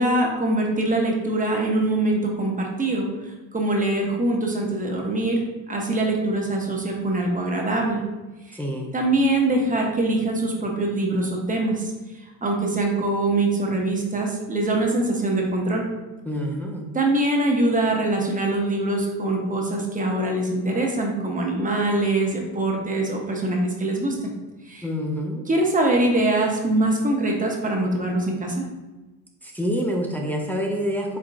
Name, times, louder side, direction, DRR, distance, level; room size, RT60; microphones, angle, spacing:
voice 1, 0.0-3.1 3.5-5.4 5.7-8.0 8.5-8.6 8.9-11.9 12.4-15.8 16.9-24.3 24.7-24.8 25.5-28.6, right 2 dB, 20° right, 0 dB, 0.9 m, -23 dB
voice 2, 8.5-8.9 16.3-16.8 24.8-25.4 29.4-31.2, equal, 5° left, -1 dB, 0.5 m, -27 dB
4.8 x 3.5 x 2.5 m, 1.1 s
supercardioid pair, 85°, 36 cm